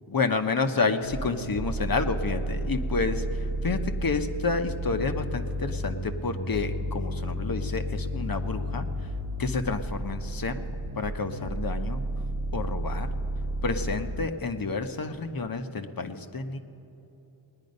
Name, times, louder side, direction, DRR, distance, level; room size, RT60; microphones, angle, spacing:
voice 1, 0.1-3.2 3.6-8.8 9.4-12.0 12.5-13.1 13.6-16.6, left 4 dB, 45° left, 7 dB, 0.9 m, -29 dB
sound 1, 1.0-14.3, right 1 dB, 90° right, 1.1 m, -32 dB
19.0 x 9.8 x 5.4 m, 3.0 s
cardioid pair, 55°, 48 cm